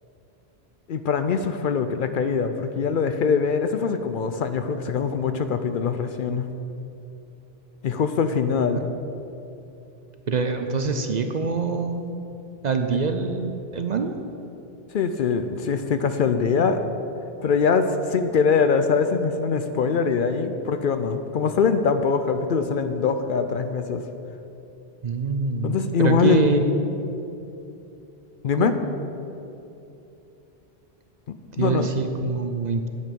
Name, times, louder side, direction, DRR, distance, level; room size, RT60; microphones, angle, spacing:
voice 1, 0.9-6.5 7.8-8.8 14.9-16.8 17.4-24.0 25.6-26.5 28.4-28.8 31.3-31.9, left 5 dB, 60° left, 8 dB, 0.7 m, -23 dB
voice 2, 10.3-12.2 12.6-14.2 25.0-26.8 28.5-28.7 31.6-32.9, right 4 dB, 50° right, 6 dB, 0.6 m, -25 dB
9.0 x 8.6 x 5.3 m, 2.9 s
omnidirectional pair, 1.0 m